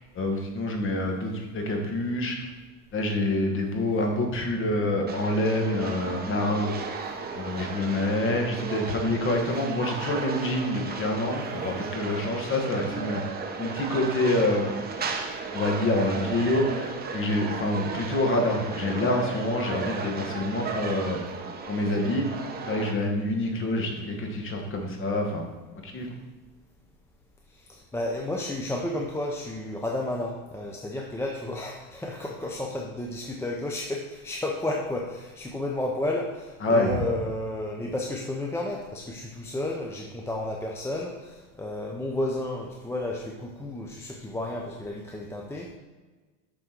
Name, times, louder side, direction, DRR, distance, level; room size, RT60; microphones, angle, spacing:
voice 1, 0.1-2.4 2.9-6.7 7.3-13.2 13.6-14.7 15.5-21.2 21.7-22.4 22.7-25.5 25.8-26.1 36.6-36.9, left 1 dB, 30° left, 2 dB, 1.6 m, -27 dB
sound 1, 5.1-22.9, right 4 dB, 20° right, 0.9 m, -35 dB
voice 2, 27.5-45.7, left 1 dB, 5° left, -1 dB, 0.6 m, -32 dB
6.4 x 6.2 x 4.6 m, 1.3 s
supercardioid pair, 120°, 43 cm